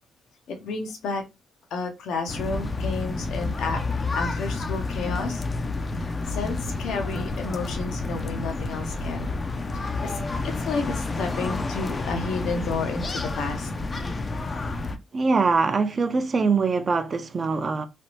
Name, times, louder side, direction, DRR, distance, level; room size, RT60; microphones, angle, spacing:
voice 1, 0.5-1.2 1.7-3.8 4.2-5.4 6.0-9.3 9.7-10.2 10.4-13.7, left 4 dB, 75° left, 0.7 m, -31 dB
sound 1, 2.3-15.0, left 3 dB, 30° left, 0.4 m, -30 dB
voice 2, 15.1-17.9, right 4 dB, 35° right, 0.5 m, -23 dB
3.2 x 2.0 x 2.8 m
cardioid pair, 90°, 0 cm